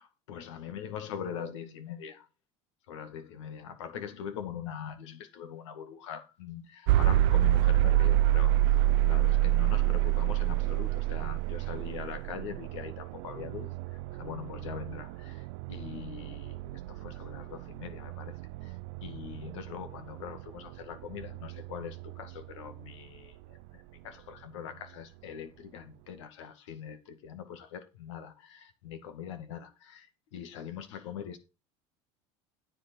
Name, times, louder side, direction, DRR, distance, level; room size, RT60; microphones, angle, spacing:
voice 1, 0.0-2.3 2.9-8.6 9.0-31.4, left 8 dB, 80° left, 2.1 m, -42 dB
sound 1, 6.9-22.8, right 14 dB, 70° right, 0.5 m, -28 dB
9.7 x 9.0 x 4.6 m
supercardioid pair, 95°, 15 cm